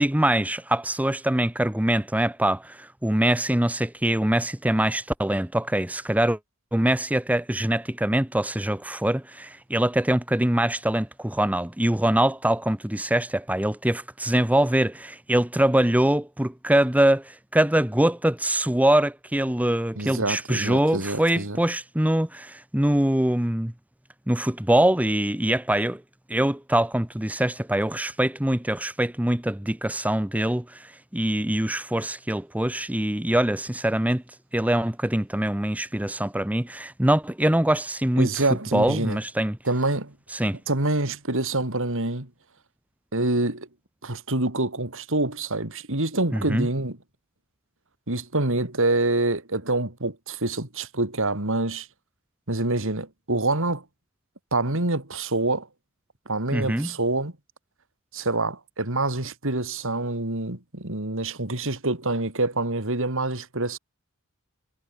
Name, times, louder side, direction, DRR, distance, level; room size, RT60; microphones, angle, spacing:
voice 1, 0.0-6.4 6.7-23.7 24.3-26.0 26.3-34.2 34.5-38.3 38.7-39.6 40.3-40.6 46.3-46.7 56.5-56.9, right 1 dB, 5° right, 0.9 m, -23 dB
voice 2, 20.0-21.6 38.2-39.2 39.6-40.1 40.7-42.3 43.1-43.7 44.0-47.0 48.1-51.9 52.5-53.8 54.5-55.7 56.3-57.3 58.1-63.8, right 2 dB, 60° right, 4.0 m, -26 dB
head